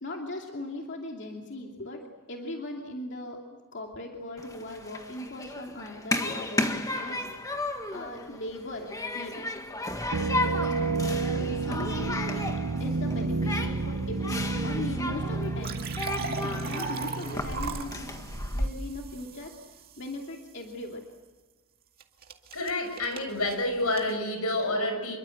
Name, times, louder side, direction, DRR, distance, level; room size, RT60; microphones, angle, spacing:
voice 1, 0.0-2.0 2.3-3.4 3.7-7.3 7.9-9.5 10.2-12.4 12.8-15.8 16.2-18.1 18.5-19.5 20.0-21.0, left 1 dB, 55° left, 1 dB, 2.7 m, -39 dB
Human group actions, 4.4-18.7, left 2 dB, 15° left, 1.7 m, -34 dB
sound 1, 10.1-18.8, right 3 dB, 85° right, 0.9 m, -31 dB
sound 2, 15.4-20.5 22.0-24.1, right 5 dB, 45° right, 2.1 m, -39 dB
voice 2, 22.5-25.2, left 1 dB, 90° left, 6 dB, 6.4 m, -28 dB
27.5 x 23.0 x 7.9 m, 1.3 s
head